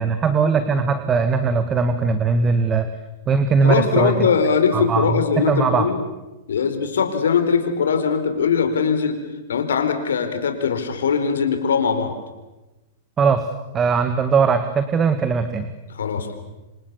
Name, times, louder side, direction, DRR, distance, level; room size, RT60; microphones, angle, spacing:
voice 1, 0.0-2.9 3.3-4.3 4.7-5.9 13.2-13.5 13.7-15.7, right 5 dB, 25° right, 9 dB, 2.0 m, -20 dB
voice 2, 3.6-6.0 6.5-9.2 9.5-12.1 15.9-16.3, left 6 dB, 85° left, 7 dB, 4.5 m, -21 dB
29.0 x 26.5 x 7.1 m, 1.1 s
hypercardioid pair, 120°, 0 cm